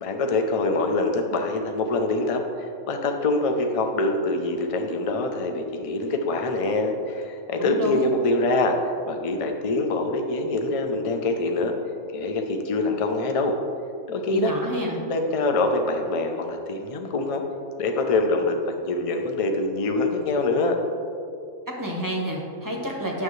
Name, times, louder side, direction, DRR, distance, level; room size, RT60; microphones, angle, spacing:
voice 1, 0.0-8.8 9.0-11.7 12.1-13.6 14.1-14.5 15.1-17.4 17.8-20.8, left 2 dB, 40° left, 4 dB, 0.5 m, -24 dB
voice 2, 7.6-8.1 14.3-15.0 21.8-23.2, equal, 20° right, 0 dB, 0.8 m, -29 dB
9.3 x 6.6 x 3.2 m, 2.4 s
omnidirectional pair, 1.4 m